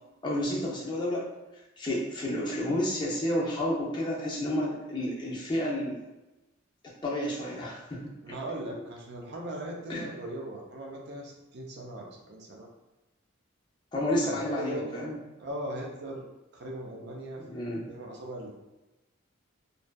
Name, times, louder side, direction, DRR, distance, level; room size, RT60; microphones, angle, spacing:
voice 1, 0.2-1.3 1.8-6.0 7.0-8.3 9.9-10.1 13.9-15.2 17.4-17.8, left 1 dB, 20° left, -4 dB, 0.4 m, -30 dB
voice 2, 8.2-12.7 14.2-16.2 16.5-17.4 17.9-18.5, right 1 dB, 55° right, -1 dB, 0.5 m, -39 dB
2.5 x 2.2 x 2.2 m, 1.0 s
head